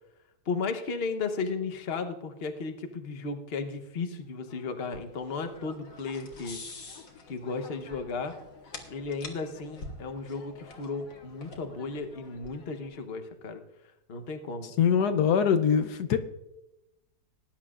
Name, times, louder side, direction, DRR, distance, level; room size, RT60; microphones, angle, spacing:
voice 1, 0.5-6.6 7.3-8.3 8.9-13.6 14.1-14.7, left 4 dB, 45° left, 1.1 m, -34 dB
sound 1, 4.5-13.0, left 3 dB, 60° left, 2.0 m, -47 dB
voice 2, 14.8-16.2, left 7 dB, 85° left, 1.3 m, -23 dB
19.0 x 10.5 x 2.5 m
omnidirectional pair, 1.7 m